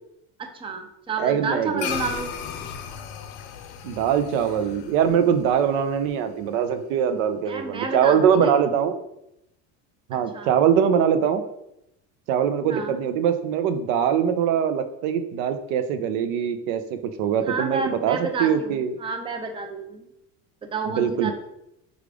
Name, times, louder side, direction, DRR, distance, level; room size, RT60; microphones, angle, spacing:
voice 1, 0.4-2.3 7.5-8.5 10.3-10.5 12.7-13.0 17.5-20.1 20.6-21.3, right 4 dB, 15° right, 5 dB, 0.3 m, -30 dB
voice 2, 1.2-1.9 3.8-9.0 10.1-11.4 12.3-19.0 20.9-21.3, right 8 dB, 85° right, 9 dB, 0.6 m, -22 dB
sound 1, 1.8-6.4, left 7 dB, 80° left, 0.6 m, -36 dB
4.8 x 2.4 x 3.3 m, 0.84 s
cardioid pair, 120°, 40 cm